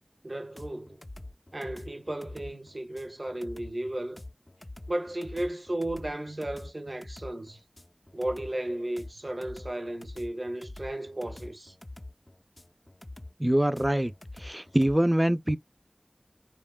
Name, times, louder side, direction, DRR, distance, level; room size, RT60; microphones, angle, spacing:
voice 1, 0.2-1.0 1.5-4.2 4.9-7.6 8.1-11.7, right 1 dB, 70° right, 0.6 m, -34 dB
sound 1, 0.6-15.0, left 2 dB, 45° left, 0.4 m, -45 dB
voice 2, 13.4-14.1 14.4-15.6, right 1 dB, 20° right, 0.4 m, -24 dB
2.8 x 2.2 x 2.2 m
wide cardioid pair, 40°, 0 cm